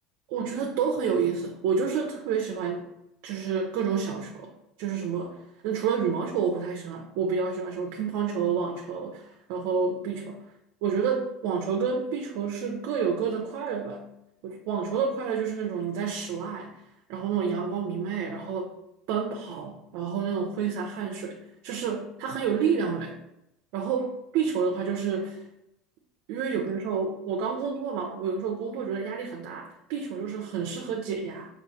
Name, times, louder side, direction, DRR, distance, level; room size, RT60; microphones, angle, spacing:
voice 1, 0.3-2.9 3.2-4.5 4.8-5.4 5.6-10.4 10.8-14.0 14.4-16.7 17.1-18.7 19.1-23.1 23.7-24.1 24.3-25.4 26.3-31.5, right 6 dB, 70° right, 1 dB, 0.6 m, -29 dB
5.3 x 2.5 x 4.1 m, 0.84 s
cardioid pair, 140°, 0 cm